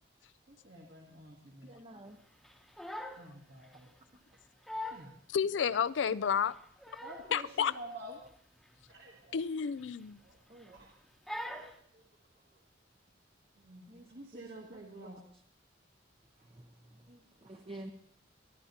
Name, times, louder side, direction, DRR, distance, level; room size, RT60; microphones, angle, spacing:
voice 1, 0.5-1.7 3.2-3.9 4.9-5.2 7.0-8.2 8.9-9.4 10.2-10.4 10.7-10.9 11.4-11.6 11.9-12.0 13.6-15.2, right 1 dB, 65° right, 1.9 m, -49 dB
voice 2, 1.6-2.2 10.5-10.8 13.9-14.1 14.3-15.1 16.5-17.9, right 1 dB, 30° right, 0.7 m, -50 dB
Crying sobbing, 2.4-3.3 3.6-3.8 4.3-4.4 4.7-5.1 5.6-5.7 6.5-7.3 7.6-7.9 8.2-8.4 8.7-8.9 9.7-10.3 10.6-10.9 11.3-11.8, left 1 dB, ahead, 0.9 m, -42 dB
voice 3, 5.3-6.5 7.3-7.7 9.3-10.2, left 7 dB, 80° left, 0.4 m, -31 dB
22.5 x 11.5 x 2.9 m
head